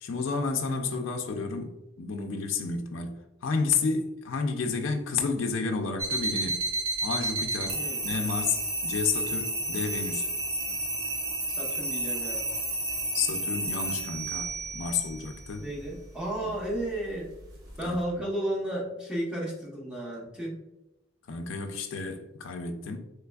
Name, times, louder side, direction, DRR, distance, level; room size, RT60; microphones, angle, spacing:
voice 1, 0.0-6.7 7.0-10.3 13.1-15.7 16.4-16.6 17.8-18.0 21.3-23.0, left 4 dB, 70° left, 4 dB, 0.4 m, -31 dB
sound 1, 6.0-18.0, right 2 dB, 85° right, 0.9 m, -32 dB
voice 2, 7.7-8.0 11.5-12.4 15.5-17.3 17.8-20.6, right 1 dB, 5° right, -4 dB, 0.7 m, -33 dB
3.3 x 3.2 x 2.2 m, 0.94 s
head